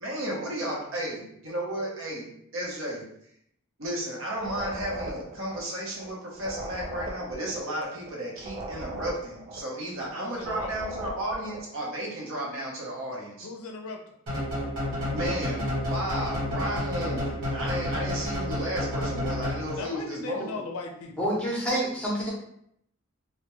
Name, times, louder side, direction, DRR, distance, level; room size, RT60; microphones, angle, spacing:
voice 1, 0.0-2.3 2.5-3.0 3.8-13.5 15.1-20.6, right 1 dB, 65° right, -3 dB, 0.8 m, -33 dB
sound 1, 4.3-11.7, right 1 dB, 30° right, 0.3 m, -39 dB
voice 2, 10.1-10.7 13.4-14.1 19.7-21.1, left 4 dB, 85° left, 3 dB, 0.4 m, -38 dB
sound 2, 14.3-20.0, left 1 dB, 90° right, 1.0 m, -30 dB
voice 3, 21.2-22.3, equal, 5° left, -5 dB, 0.7 m, -27 dB
2.3 x 2.1 x 2.9 m, 0.72 s
head